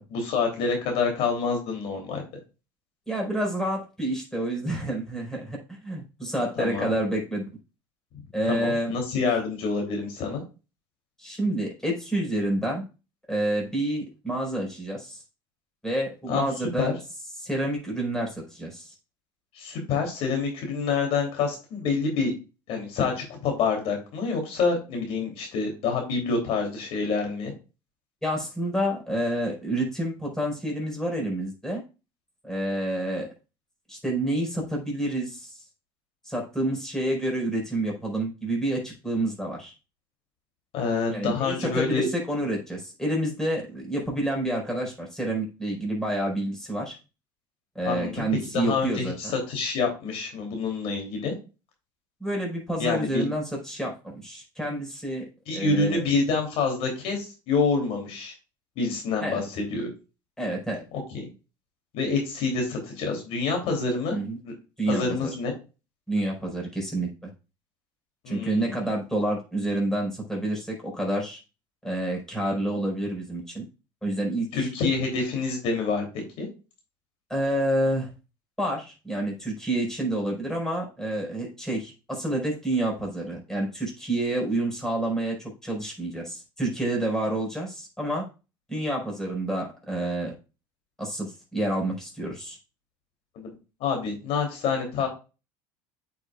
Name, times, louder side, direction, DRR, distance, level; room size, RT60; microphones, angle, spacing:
voice 1, 0.1-2.2 6.6-6.9 8.5-10.4 16.3-16.5 16.8-16.9 19.5-22.3 22.7-27.5 40.7-42.1 47.8-48.3 48.5-51.3 52.8-53.2 55.5-58.3 58.8-59.9 60.9-61.3 61.9-64.2 64.4-64.5 64.9-65.5 68.2-68.8 74.5-76.0 76.4-76.5 93.3-93.5 93.8-95.1, left 4 dB, 65° left, 3 dB, 3.1 m, -27 dB
voice 2, 3.1-5.6 5.8-7.4 8.3-8.9 11.2-12.8 13.3-15.2 15.8-16.9 17.4-18.9 28.2-31.8 32.4-33.3 33.9-35.6 36.2-39.7 41.1-47.0 47.7-49.1 52.2-55.2 55.5-56.0 59.2-59.4 60.4-60.8 64.1-64.4 64.8-65.3 66.1-67.1 68.3-71.4 71.8-73.6 74.0-74.7 77.3-78.1 78.6-88.2 88.7-90.3 91.0-92.6, right 1 dB, 5° left, -2 dB, 4.8 m, -28 dB
8.7 x 7.0 x 2.4 m, 0.30 s
supercardioid pair, 100°, 11 cm